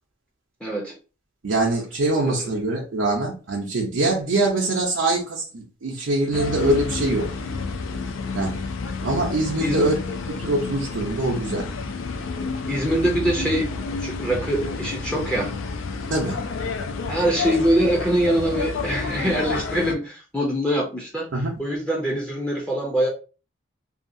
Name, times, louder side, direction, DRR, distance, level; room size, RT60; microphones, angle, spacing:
voice 1, 0.6-0.9 2.2-2.5 9.6-9.9 12.7-13.7 14.0-15.5 17.1-21.3 21.6-23.1, right 1 dB, 5° left, 0.5 m, -23 dB
voice 2, 1.4-7.3 8.3-8.6 9.0-10.0 10.4-11.7 16.1-16.4 21.3-21.5, right 2 dB, 80° right, 0.6 m, -23 dB
sound 1, 6.3-19.9, left 4 dB, 85° left, 0.4 m, -30 dB
2.7 x 2.3 x 2.6 m
head